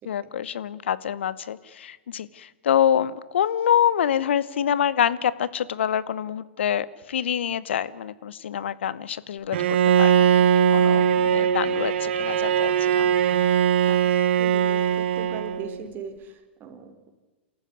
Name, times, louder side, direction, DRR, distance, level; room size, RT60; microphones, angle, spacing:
voice 1, 0.0-13.1, left 9 dB, 75° left, 18 dB, 1.0 m, -26 dB
Bowed string instrument, 9.5-15.8, right 8 dB, 65° right, 1.1 m, -20 dB
voice 2, 13.9-17.1, right 5 dB, 30° right, 6 dB, 3.7 m, -41 dB
28.5 x 14.5 x 9.5 m, 1.3 s
hypercardioid pair, 110°, 6 cm